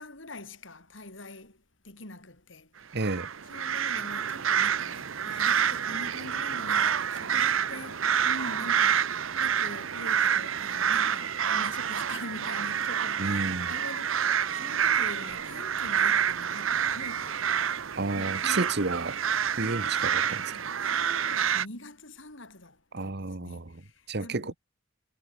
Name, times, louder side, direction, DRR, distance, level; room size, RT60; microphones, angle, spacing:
voice 1, 0.0-3.0 3.5-17.6 18.0-18.8 19.5-20.1 20.5-24.6, left 1 dB, 70° left, 6.8 m, -44 dB
voice 2, 2.9-3.3 13.2-13.7 18.0-19.2 19.6-20.5 22.9-23.8 24.1-24.5, right 3 dB, 55° right, 1.4 m, -31 dB
sound 1, 3.0-21.7, right 8 dB, 85° right, 0.9 m, -28 dB
head